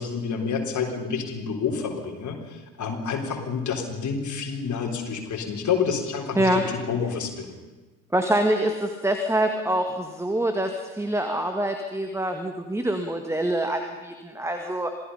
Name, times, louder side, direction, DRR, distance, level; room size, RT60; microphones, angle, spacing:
voice 1, 0.0-7.5, left 6 dB, 40° left, 1 dB, 4.1 m, -28 dB
voice 2, 8.1-14.9, right 1 dB, 5° right, 5 dB, 1.8 m, -25 dB
26.5 x 17.5 x 5.7 m, 1.2 s
figure-of-eight pair, 55°, 47 cm